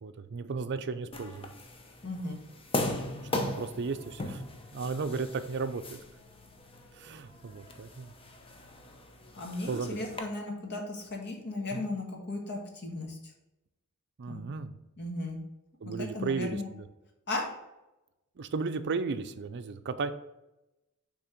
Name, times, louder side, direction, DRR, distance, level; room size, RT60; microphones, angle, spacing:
voice 1, 0.0-1.5 3.3-4.4 4.7-6.0 6.9-8.1 9.7-10.0 11.7-11.9 14.2-14.8 15.8-16.9 18.4-20.1, right 4 dB, 55° right, 10 dB, 0.5 m, -35 dB
sound 1, 1.1-10.2, left 2 dB, 25° left, 0.7 m, -39 dB
voice 2, 2.0-2.4 9.4-13.2 14.3-14.4 15.0-15.4 15.8-16.7 17.3-17.5, left 2 dB, 55° left, 1 dB, 1.6 m, -36 dB
6.4 x 3.4 x 5.8 m, 0.94 s
head